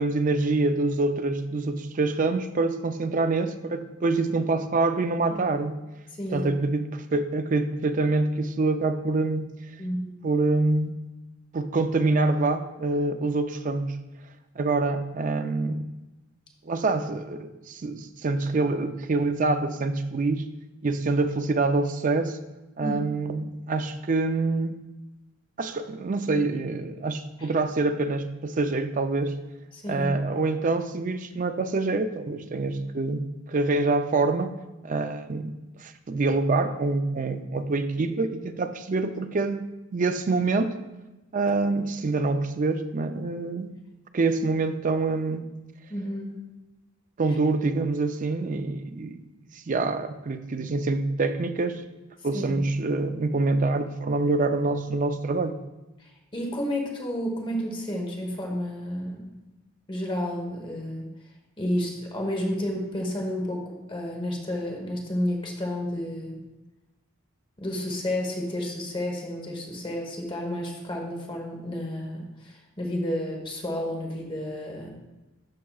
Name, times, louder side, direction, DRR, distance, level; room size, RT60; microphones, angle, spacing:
voice 1, 0.0-5.8 6.3-9.5 10.2-11.0 11.5-14.0 14.6-15.8 16.6-20.4 20.8-22.4 22.8-24.8 25.6-29.4 29.9-34.5 34.8-35.5 35.8-40.8 41.3-43.7 44.1-45.4 47.2-49.2 49.7-51.8 52.2-55.6, right 3 dB, 40° right, 9 dB, 0.4 m, -26 dB
voice 2, 6.2-6.5 9.8-10.2 22.8-23.0 27.4-27.5 29.7-30.1 45.9-46.4 52.3-52.6 56.3-59.4 59.9-61.1 61.6-66.4 67.6-74.9, left 1 dB, 25° left, 1 dB, 1.1 m, -31 dB
12.0 x 4.7 x 2.3 m, 1.0 s
head